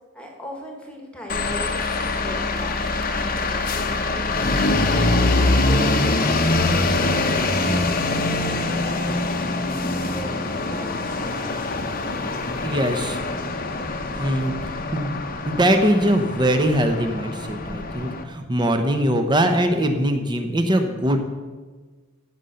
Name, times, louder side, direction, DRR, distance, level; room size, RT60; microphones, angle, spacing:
voice 1, 0.1-1.8 2.2-5.1 5.5-9.2 9.7-11.7, left 1 dB, 5° left, 0 dB, 1.6 m, -38 dB
sound 1, 1.3-18.2, left 2 dB, 45° left, 0.9 m, -24 dB
voice 2, 12.6-13.2 14.1-15.2 15.4-21.2, right 1 dB, 20° right, 6 dB, 1.0 m, -21 dB
15.0 x 5.6 x 6.6 m, 1.4 s
head